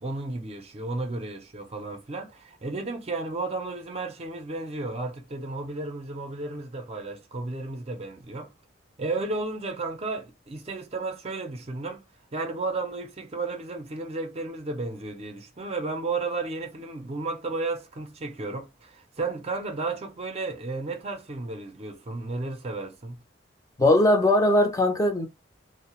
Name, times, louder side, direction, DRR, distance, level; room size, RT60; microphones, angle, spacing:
voice 1, 0.0-8.5 9.0-12.0 12.3-23.2, right 3 dB, 35° right, 0.5 m, -33 dB
voice 2, 23.8-25.3, left 1 dB, 20° left, 0.4 m, -20 dB
2.3 x 2.0 x 2.9 m
head